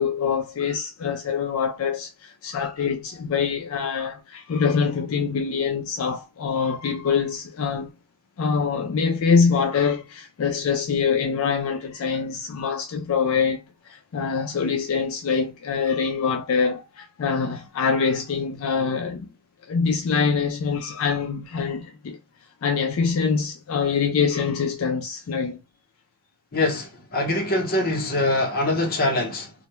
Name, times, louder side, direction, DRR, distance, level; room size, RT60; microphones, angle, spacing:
voice 1, 0.0-7.9 8.4-19.3 19.7-22.2 22.6-25.6, left 5 dB, 75° left, 0.4 m, -24 dB
voice 2, 26.5-29.5, left 2 dB, 45° left, 0.7 m, -23 dB
2.1 x 2.1 x 2.9 m
head